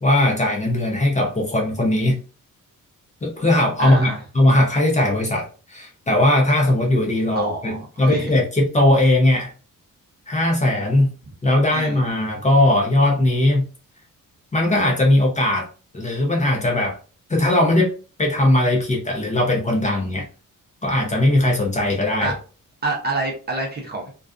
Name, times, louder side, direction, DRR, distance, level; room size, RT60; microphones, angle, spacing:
voice 1, 0.0-2.1 3.2-9.5 10.3-11.1 11.4-13.7 14.5-15.7 15.9-17.0 17.3-17.9 18.2-20.2 20.8-22.3, left 1 dB, 20° left, -1 dB, 0.6 m, -19 dB
voice 2, 3.8-4.2 7.4-8.4 11.7-12.0 22.2-22.3 22.8-24.1, right 2 dB, 30° right, 0 dB, 0.6 m, -27 dB
2.4 x 2.3 x 2.4 m, 0.36 s
wide cardioid pair, 155°, 34 cm